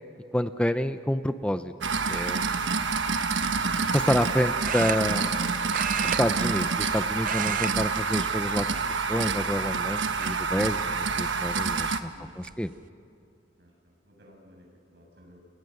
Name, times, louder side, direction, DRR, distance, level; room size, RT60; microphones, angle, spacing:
voice 1, 0.3-1.7 2.1-2.4 3.9-5.3 6.0-8.7 9.1-12.1 12.4-12.7, equal, 5° left, 9 dB, 0.6 m, -28 dB
sound 1, 1.8-12.0, right 5 dB, 90° right, 1.3 m, -27 dB
sound 2, 2.9-3.0 4.6-5.4 5.7-6.9 7.2-7.8 8.1-8.3 9.1-9.6 10.2-10.3 11.7-11.8 12.2-12.5, right 8 dB, 45° right, 0.6 m, -32 dB
voice 2, 12.1-12.7 13.6-15.4, equal, 65° right, 1 dB, 7.4 m, -55 dB
30.0 x 29.5 x 6.6 m, 2.6 s
head